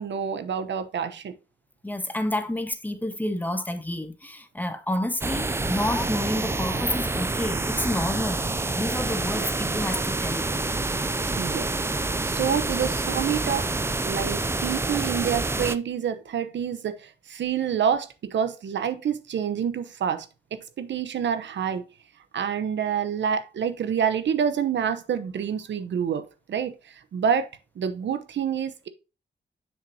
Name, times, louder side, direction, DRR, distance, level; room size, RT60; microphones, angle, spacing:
voice 1, 0.0-1.4 9.3-9.5 11.4-11.7 12.2-13.7 14.0-20.3 20.5-21.9 22.3-27.5 27.8-28.9, right 8 dB, 90° right, 0.9 m, -27 dB
voice 2, 1.8-8.4 8.7-10.5, left 1 dB, 10° left, 0.7 m, -29 dB
sound 1, 5.2-15.8, right 2 dB, 15° right, 0.4 m, -27 dB
7.4 x 6.3 x 2.8 m
wide cardioid pair, 155°, 18 cm